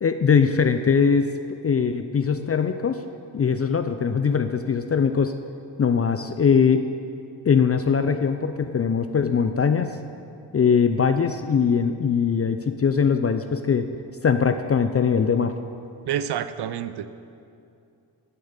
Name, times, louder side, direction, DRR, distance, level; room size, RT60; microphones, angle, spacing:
voice 1, 0.0-1.3 1.6-3.0 3.3-5.3 5.8-6.9 7.4-10.0 10.5-13.9 14.2-15.5, left 6 dB, 30° left, 9 dB, 0.5 m, -21 dB
voice 2, 16.1-17.2, right 9 dB, 60° right, 13 dB, 0.7 m, -28 dB
9.1 x 7.6 x 7.3 m, 2.5 s
supercardioid pair, 55°, 45 cm